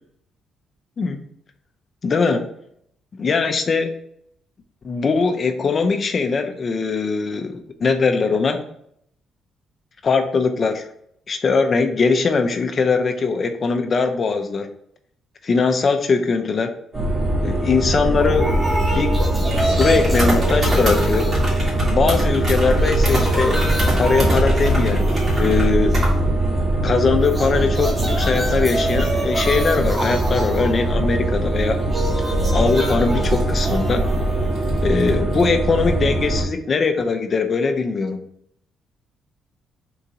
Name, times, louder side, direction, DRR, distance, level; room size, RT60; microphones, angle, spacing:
voice 1, 2.0-2.5 3.2-3.9 4.8-8.6 10.0-10.9 11.3-14.7 15.4-16.7 17.4-18.5 18.9-19.2 19.7-21.3 21.9-23.7 24.0-26.0 26.8-31.8 32.5-34.0 34.8-38.2, left 4 dB, 45° left, 6 dB, 0.6 m, -21 dB
sound 1, 16.9-36.4, right 1 dB, 45° right, 1.8 m, -21 dB
sound 2, 18.2-22.2 22.5-26.2 27.2-35.2, right 1 dB, 20° right, 1.1 m, -28 dB
3.9 x 2.7 x 4.6 m, 0.71 s
cardioid pair, 90°, 0 cm